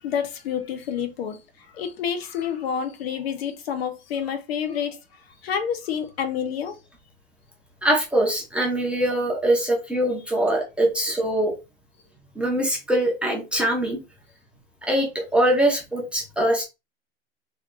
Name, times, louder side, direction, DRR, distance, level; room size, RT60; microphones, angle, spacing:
voice 1, 0.0-6.8, left 8 dB, 75° left, 1.1 m, -29 dB
voice 2, 7.8-11.5 12.3-14.0 14.8-16.6, right 1 dB, 5° right, 0.6 m, -23 dB
3.3 x 2.7 x 3.8 m
supercardioid pair, 155°, 31 cm